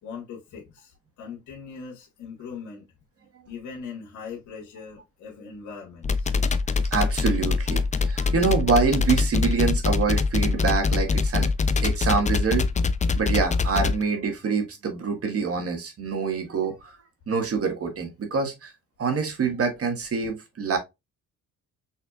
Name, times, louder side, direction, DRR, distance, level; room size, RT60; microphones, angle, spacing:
voice 1, 0.0-2.9 3.4-6.3, left 6 dB, 75° left, 1.5 m, -40 dB
sound 1, 6.0-14.0, left 4 dB, 25° left, 0.5 m, -23 dB
voice 2, 6.9-11.5 11.8-12.7 13.1-17.0 17.3-18.7 19.0-20.8, right 5 dB, 50° right, 1.5 m, -25 dB
5.7 x 3.2 x 2.3 m
cardioid pair, 90°, 30 cm